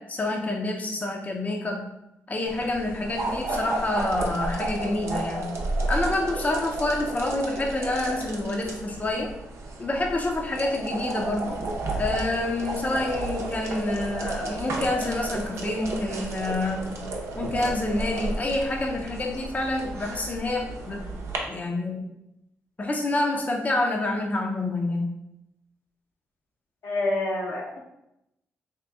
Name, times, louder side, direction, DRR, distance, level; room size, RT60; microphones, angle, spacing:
voice 1, 0.0-1.9 2.3-5.5 5.9-9.3 9.8-11.6 12.0-17.0 17.4-21.1 21.5-22.1 22.8-25.1, left 2 dB, 30° left, 1 dB, 0.6 m, -27 dB
sound 1, 2.5-21.4, right 2 dB, 70° right, 0.7 m, -32 dB
voice 2, 26.8-27.8, left 2 dB, 75° left, -2 dB, 0.9 m, -27 dB
3.2 x 2.9 x 3.4 m, 0.86 s
supercardioid pair, 60°, 5 cm